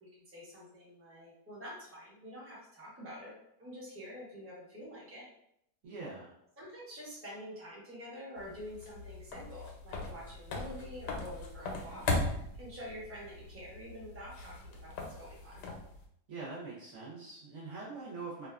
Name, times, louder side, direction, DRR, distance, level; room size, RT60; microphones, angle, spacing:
voice 1, 0.0-3.3 3.6-5.3 6.6-15.6, equal, 15° right, -6 dB, 0.4 m, -47 dB
voice 2, 5.8-6.3 16.3-18.5, right 3 dB, 60° right, -6 dB, 0.9 m, -43 dB
sound 1, 8.4-16.1, left 2 dB, 80° left, 1.1 m, -39 dB
2.7 x 2.2 x 2.3 m, 0.75 s
omnidirectional pair, 1.7 m